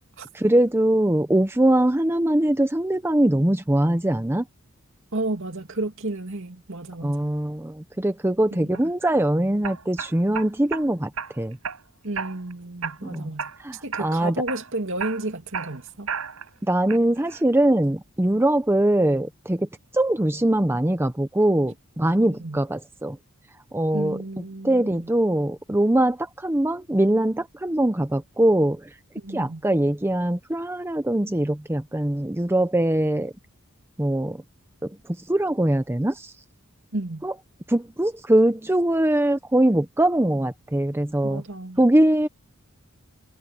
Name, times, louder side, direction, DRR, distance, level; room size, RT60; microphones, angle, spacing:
voice 1, 0.3-4.4 7.0-11.1 11.4-11.6 13.0-13.3 13.6-14.3 16.6-19.7 19.9-23.2 23.7-24.2 24.6-28.9 29.3-33.3 34.0-34.4 34.8-34.9 35.3-36.3 37.2-37.3 37.7-41.4 41.8-42.3, right 1 dB, 10° right, 0.7 m, -22 dB
voice 2, 5.1-7.3 8.5-8.8 12.0-13.5 13.8-16.1 22.4-22.6 23.9-25.1 29.2-29.6 36.9-37.3 41.2-41.8, right 2 dB, 60° right, 2.6 m, -32 dB
sound 1, 8.7-9.1 9.6-10.8 11.2-11.8 12.1-12.5 12.8-13.6 13.9-14.2 14.5-16.5 16.9-17.4, right 6 dB, 80° right, 5.1 m, -33 dB
head